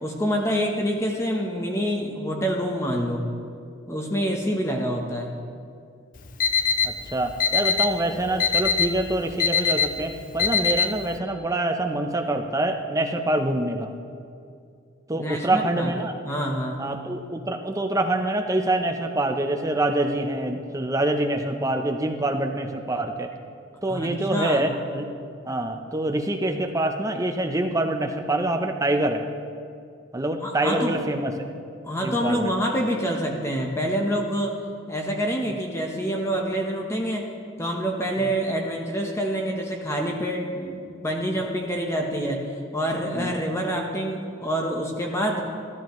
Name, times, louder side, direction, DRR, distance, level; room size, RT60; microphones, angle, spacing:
voice 1, 0.0-3.3 3.9-5.3 15.1-15.9 16.2-16.8 23.9-24.7 30.4-31.0 31.8-34.6 34.9-37.3 37.6-42.5 42.7-45.4, equal, 15° left, 1 dB, 0.9 m, -27 dB
Alarm, 6.2-11.2, left 6 dB, 40° left, 0.5 m, -24 dB
voice 2, 6.8-13.9 15.1-16.1 16.8-23.3 23.8-25.1 25.5-29.2 30.1-31.6 32.0-32.5 38.2-38.3 43.1-43.4, right 1 dB, 15° right, 4 dB, 0.6 m, -25 dB
13.5 x 13.0 x 3.1 m, 2.3 s
head